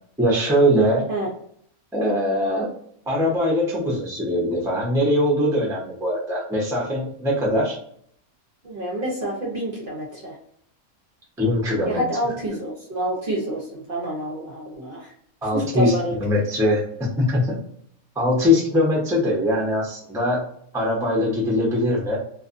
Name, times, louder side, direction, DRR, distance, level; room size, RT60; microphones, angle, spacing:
voice 1, 0.2-1.1 1.9-2.7 3.1-7.8 11.4-12.0 15.4-17.6 18.1-20.4 20.7-22.2, left 1 dB, 5° right, -3 dB, 0.4 m, -21 dB
voice 2, 8.6-10.4 11.8-15.1 15.5-16.2, right 1 dB, 50° right, -3 dB, 0.7 m, -28 dB
2.5 x 2.4 x 2.4 m, 0.65 s
omnidirectional pair, 1.5 m